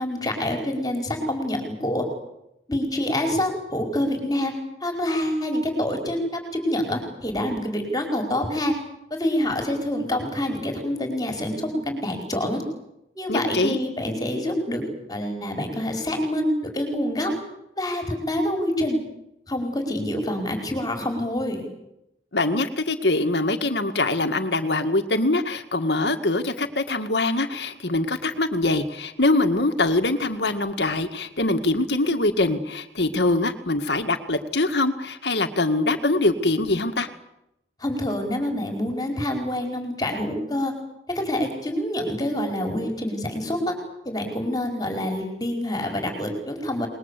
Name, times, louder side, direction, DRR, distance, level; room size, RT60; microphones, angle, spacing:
voice 1, 0.0-2.1 2.7-4.5 4.8-8.7 9.1-12.6 13.1-17.3 17.8-19.0 19.5-21.7 37.8-40.7 41.1-43.7 44.0-46.9, left 1 dB, 20° left, 3 dB, 5.0 m, -26 dB
voice 2, 13.3-13.8 22.3-37.1, left 2 dB, 70° left, 6 dB, 2.0 m, -23 dB
27.5 x 21.0 x 8.4 m, 0.82 s
head